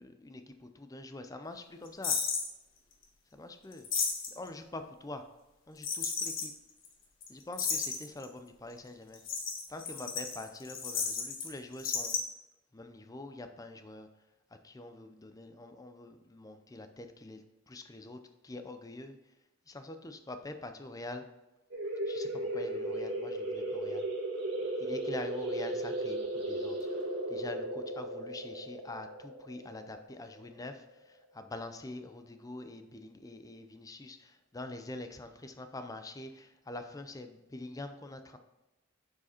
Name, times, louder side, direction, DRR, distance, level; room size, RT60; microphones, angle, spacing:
voice 1, 0.0-2.2 3.3-3.9 4.3-5.2 5.7-6.5 7.3-9.2 9.7-12.1 12.7-14.1 14.6-19.2 19.7-21.2 22.1-24.1 24.8-26.8 27.3-38.4, left 2 dB, 15° left, 8 dB, 0.5 m, -45 dB
sound 1, 2.0-2.5 3.7-4.5 5.8-6.5 6.8-6.9 7.2-7.3 7.5-8.2 9.1-11.5 11.7-12.2, left 5 dB, 65° left, 1.4 m, -33 dB
sound 2, 21.7-31.0, right 1 dB, 55° right, 1.9 m, -36 dB
6.8 x 4.8 x 4.3 m, 1.0 s
head